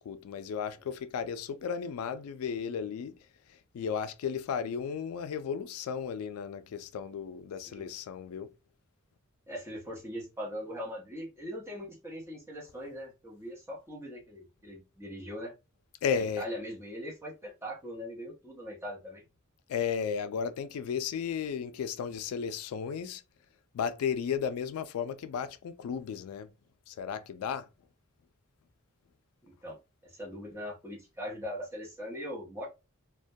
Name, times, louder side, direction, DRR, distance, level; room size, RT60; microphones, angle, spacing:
voice 1, 0.0-3.1 3.5-8.5 16.0-16.5 19.7-23.2 23.7-26.5 26.9-27.7, left 7 dB, 85° left, 0.3 m, -34 dB
voice 2, 9.5-15.5 16.1-19.2 29.6-29.8 30.0-32.7, equal, 10° right, 0.7 m, -41 dB
2.2 x 2.1 x 2.6 m
head